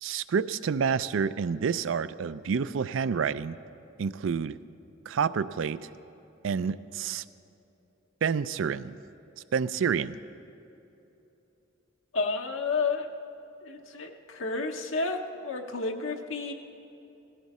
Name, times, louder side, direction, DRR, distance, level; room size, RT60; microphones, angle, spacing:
voice 1, 0.0-3.6 4.0-4.6 5.1-5.8 6.4-7.2 8.2-9.0 9.5-10.2, right 6 dB, 75° right, 15 dB, 0.4 m, -28 dB
voice 2, 12.1-13.1 13.6-16.5, left 4 dB, 80° left, 3 dB, 0.8 m, -31 dB
17.5 x 14.5 x 4.2 m, 3.0 s
head